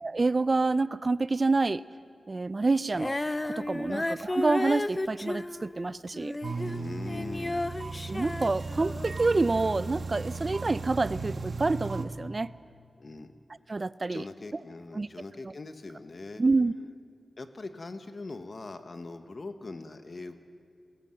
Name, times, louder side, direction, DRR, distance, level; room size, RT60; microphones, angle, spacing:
voice 1, 0.0-1.8 2.3-6.3 8.1-12.5 13.7-14.2 14.9-15.1 16.4-16.7, right 3 dB, 40° right, 17 dB, 0.5 m, -27 dB
Female singing, 2.9-9.3 10.0-10.1, left 2 dB, 25° left, 0.5 m, -33 dB
sound 1, 6.4-12.1, right 3 dB, 65° right, 1.4 m, -36 dB
voice 2, 6.6-7.7 13.0-13.3 14.0-16.4 17.4-20.3, left 3 dB, 50° left, 8 dB, 1.3 m, -41 dB
21.5 x 18.5 x 7.8 m, 2.3 s
wide cardioid pair, 70°, 0 cm